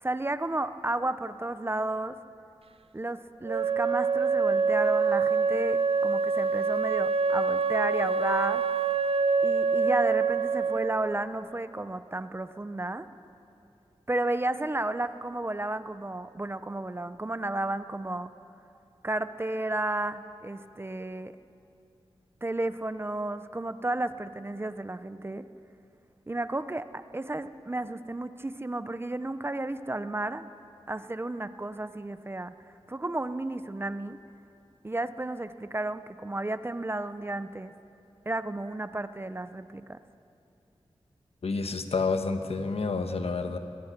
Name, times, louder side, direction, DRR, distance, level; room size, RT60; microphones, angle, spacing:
voice 1, 0.0-2.2 2.9-8.6 9.4-13.1 14.1-18.3 19.0-21.3 22.4-25.5 26.3-30.5 30.9-32.5 32.9-34.2 34.8-37.7 38.3-40.0, right 2 dB, 20° right, 12 dB, 0.6 m, -32 dB
Wind instrument woodwind instrument, 3.4-11.2, right 5 dB, 65° right, 0.6 m, -26 dB
voice 2, 41.4-43.6, left 4 dB, 70° left, 7 dB, 1.3 m, -29 dB
22.0 x 20.5 x 6.0 m, 2.7 s
wide cardioid pair, 100°, 11 cm